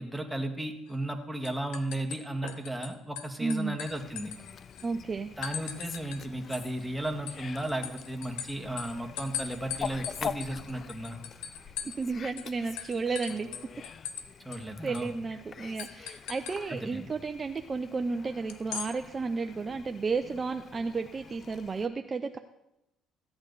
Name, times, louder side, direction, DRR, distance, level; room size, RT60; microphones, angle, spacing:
voice 1, 0.0-4.3 5.4-11.2 14.4-15.1 16.7-17.1, right 1 dB, 5° right, 4 dB, 1.8 m, -35 dB
sound 1, 0.9-1.2 1.4-2.9 3.2-4.9 5.4-6.2 6.5-12.1 12.4-12.5 12.8-14.3 14.5-14.6 14.9-15.1 15.8-16.6 18.5-18.9, left 8 dB, 85° left, 0.9 m, -40 dB
voice 2, 3.4-3.8 4.8-5.3 11.6-11.7 12.0-13.5 14.8-22.4, right 4 dB, 35° right, 7 dB, 0.6 m, -32 dB
Fowl, 3.9-21.9, left 6 dB, 45° left, 0.5 m, -45 dB
15.0 x 8.8 x 4.1 m, 0.87 s
supercardioid pair, 75°, 0 cm